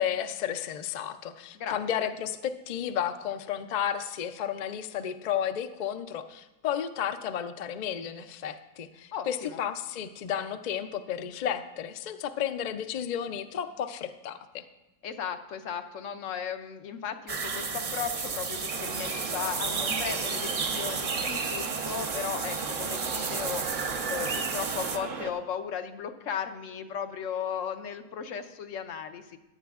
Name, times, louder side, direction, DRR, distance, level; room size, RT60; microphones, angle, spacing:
voice 1, 0.0-14.7, left 9 dB, 55° left, 9 dB, 0.5 m, -32 dB
voice 2, 1.5-2.1 9.1-9.6 15.0-23.7 24.1-29.4, left 7 dB, 75° left, 8 dB, 1.1 m, -36 dB
sound 1, 17.3-25.0, right 5 dB, 45° right, 0.4 m, -32 dB
sound 2, 18.7-25.3, right 5 dB, 80° right, 1.2 m, -37 dB
15.0 x 10.5 x 2.4 m, 1.0 s
omnidirectional pair, 1.3 m